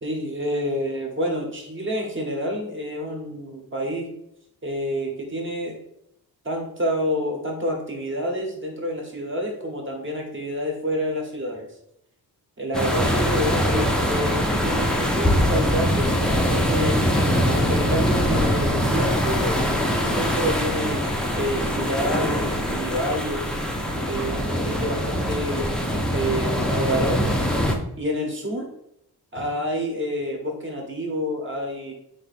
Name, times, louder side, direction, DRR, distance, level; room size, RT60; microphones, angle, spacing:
voice 1, 0.0-4.1 4.6-5.8 6.4-11.7 12.6-17.0 17.4-23.6 24.0-25.8 26.1-27.4 28.0-28.8 29.3-31.9, equal, 30° right, 1 dB, 1.0 m, -28 dB
sound 1, 12.7-27.7, equal, ahead, 0.4 m, -23 dB
4.4 x 2.7 x 4.1 m, 0.78 s
wide cardioid pair, 145°, 39 cm